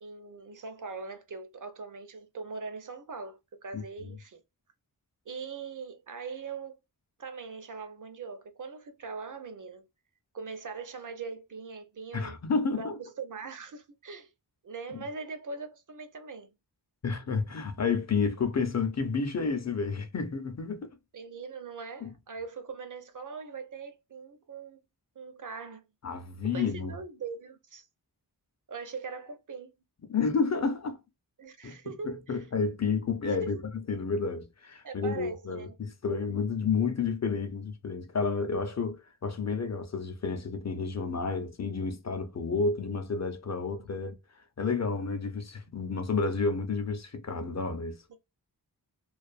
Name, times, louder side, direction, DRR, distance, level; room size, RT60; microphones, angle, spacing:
voice 1, 0.0-4.4 5.3-6.8 7.2-9.9 10.3-12.4 12.8-14.3 14.6-16.5 21.1-24.8 25.2-25.8 26.5-27.9 28.7-29.7 31.4-32.4 33.4-33.5 34.8-35.7 43.7-44.1 48.1-48.2, right 4 dB, 50° right, 0.6 m, -41 dB
voice 2, 12.1-13.0 14.9-15.0 17.0-20.9 22.0-22.1 26.0-27.0 30.1-31.0 31.6-31.8 32.0-33.6 33.9-44.1 44.6-48.0, left 5 dB, 45° left, 0.6 m, -30 dB
2.5 x 2.4 x 2.4 m
wide cardioid pair, 85°, 39 cm